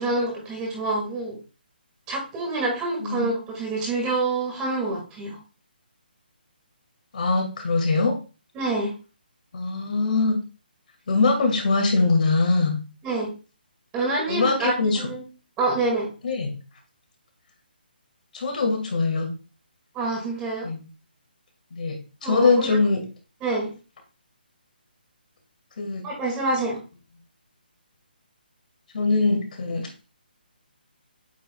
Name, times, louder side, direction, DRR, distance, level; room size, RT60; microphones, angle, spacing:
voice 1, 0.0-1.4 2.1-5.4 8.5-8.9 13.0-13.3 13.9-15.3 15.6-16.1 19.9-20.7 22.2-22.8 23.4-23.7 26.0-26.8, right 2 dB, 15° right, -1 dB, 1.9 m, -27 dB
voice 2, 7.1-8.1 9.5-10.4 11.1-12.8 14.3-15.1 16.2-16.5 18.3-19.3 20.6-20.8 21.7-22.0 22.2-23.0 25.8-26.0 28.9-29.9, left 3 dB, 55° left, 3 dB, 2.2 m, -22 dB
8.4 x 5.1 x 2.3 m, 0.33 s
hypercardioid pair, 160°, 5 cm